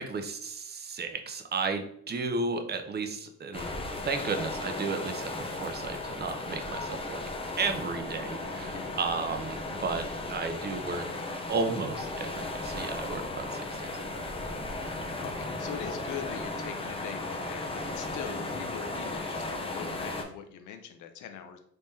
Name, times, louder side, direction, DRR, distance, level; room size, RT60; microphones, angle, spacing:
voice 1, 0.0-3.7 4.0-7.2 7.6-11.1 11.5-14.1, right 4 dB, 35° right, 6 dB, 0.6 m, -33 dB
sound 1, 3.5-20.2, left 2 dB, 20° left, 0.7 m, -36 dB
voice 2, 15.2-21.6, left 8 dB, 80° left, 7 dB, 0.7 m, -42 dB
3.5 x 3.2 x 2.7 m, 0.69 s
cardioid pair, 90°, 30 cm